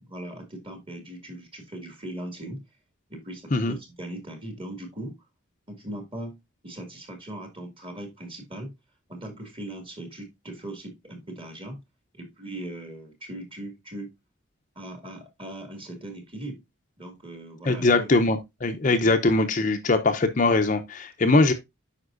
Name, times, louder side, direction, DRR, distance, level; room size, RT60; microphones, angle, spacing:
voice 1, 0.1-2.6 3.1-5.2 5.7-6.4 6.6-8.7 9.1-11.8 12.1-14.1 14.8-16.6 17.0-18.1 18.9-19.1 21.3-21.5, right 1 dB, 25° right, 2.0 m, -39 dB
voice 2, 17.7-21.5, left 2 dB, 40° left, 0.6 m, -21 dB
9.6 x 5.2 x 2.5 m
head